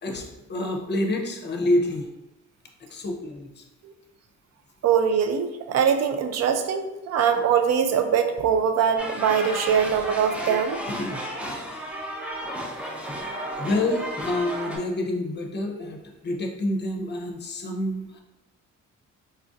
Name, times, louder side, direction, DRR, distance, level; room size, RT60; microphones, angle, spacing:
voice 1, 0.0-2.1 2.9-3.6 10.9-11.2 13.6-18.2, left 1 dB, 35° left, 2 dB, 0.6 m, -28 dB
voice 2, 4.8-10.8, right 7 dB, 60° right, 7 dB, 0.5 m, -22 dB
sound 1, 9.0-14.8, equal, 5° right, 0.6 m, -33 dB
4.2 x 2.5 x 2.4 m, 0.98 s
cardioid pair, 90°, 30 cm